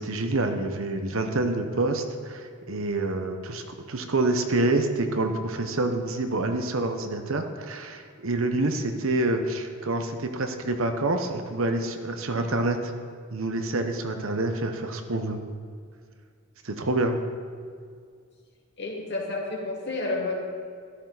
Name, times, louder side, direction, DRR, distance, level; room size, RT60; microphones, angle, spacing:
voice 1, 0.0-3.6 3.9-12.9 13.3-15.4 16.6-17.2, right 2 dB, 65° right, 6 dB, 1.0 m, -27 dB
voice 2, 18.8-20.3, left 2 dB, 50° left, -2 dB, 2.4 m, -30 dB
13.0 x 12.5 x 4.1 m, 2.1 s
head